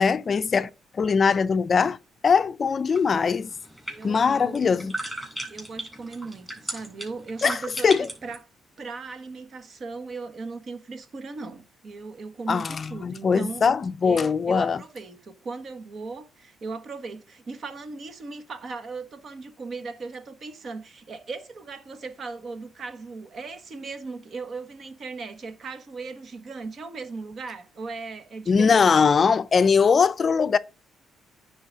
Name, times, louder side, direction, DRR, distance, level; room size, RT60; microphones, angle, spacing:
voice 1, 0.0-2.0 2.2-3.5 4.0-5.0 7.4-8.1 12.5-14.8 28.5-30.6, left 5 dB, 40° left, 0.4 m, -21 dB
sound 1, 2.9-8.4, right 1 dB, 10° right, 4.2 m, -36 dB
voice 2, 3.9-4.7 5.5-7.9 8.2-8.4 8.8-13.7 14.0-29.1, right 4 dB, 50° right, 1.3 m, -37 dB
9.3 x 4.0 x 4.9 m
cardioid pair, 90°, 0 cm